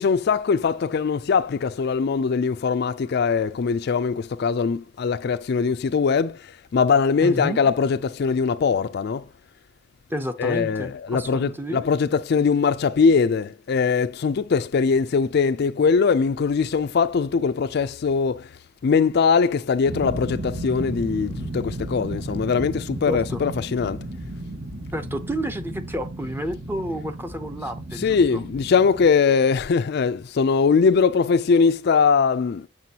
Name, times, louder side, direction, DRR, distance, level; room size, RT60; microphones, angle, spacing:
voice 1, 0.0-6.4 6.7-9.2 10.4-18.5 18.8-24.0 27.9-32.7, left 5 dB, 55° left, 0.4 m, -21 dB
voice 2, 7.2-7.6 10.1-11.8 23.1-23.4 24.9-28.4, equal, 10° right, 0.6 m, -30 dB
sound 1, 19.9-29.1, right 1 dB, 90° right, 1.6 m, -34 dB
7.6 x 6.0 x 2.8 m
head